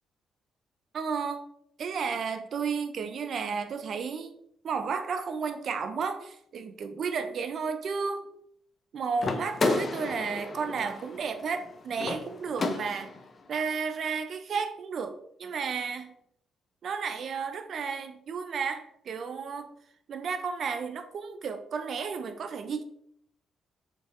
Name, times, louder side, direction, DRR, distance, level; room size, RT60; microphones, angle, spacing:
voice 1, 0.9-1.5 1.8-4.3 4.6-8.3 8.9-13.1 13.5-16.1 16.8-19.7 20.1-22.8, right 5 dB, 55° right, 0.4 m, -33 dB
sound 1, 9.2-13.3, left 3 dB, 40° left, 0.5 m, -32 dB
4.2 x 3.2 x 2.5 m
cardioid pair, 90°, 0 cm